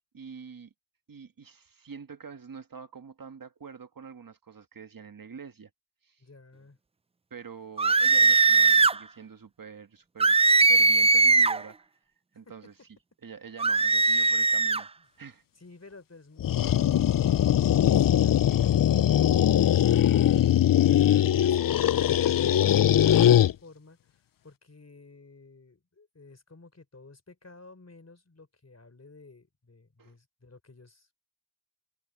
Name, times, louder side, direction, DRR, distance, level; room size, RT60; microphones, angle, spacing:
voice 1, 0.1-0.7 1.1-5.7 6.0-6.2 7.3-11.9 12.3-12.7 13.2-14.9 15.2-15.4 30.0-30.1, right 6 dB, 70° right, 1.5 m, -46 dB
voice 2, 6.2-6.8 12.5-12.6 15.6-20.4 21.0-31.2, left 3 dB, 45° left, 3.8 m, -53 dB
sound 1, 7.8-9.0 10.2-11.6 13.6-14.8, right 3 dB, 20° right, 0.3 m, -20 dB
sound 2, 16.4-23.5, left 11 dB, 70° left, 0.5 m, -21 dB
cardioid pair, 40°, 35 cm